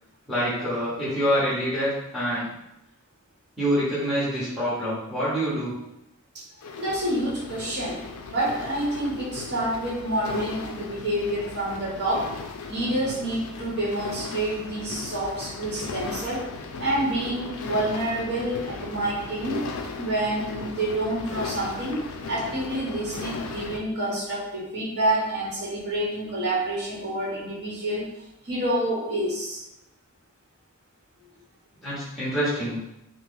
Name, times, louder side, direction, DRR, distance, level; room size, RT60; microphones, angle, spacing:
voice 1, 0.3-2.5 3.6-5.7 31.8-32.8, equal, ahead, -10 dB, 0.9 m, -26 dB
sound 1, 6.6-23.8, left 4 dB, 65° left, 0.3 m, -37 dB
voice 2, 6.8-8.0 8.3-12.3 12.7-16.4 16.8-19.6 20.0-22.0 22.3-28.1 28.4-29.6, right 1 dB, 50° right, -5 dB, 1.1 m, -28 dB
2.9 x 2.0 x 3.4 m, 0.85 s
head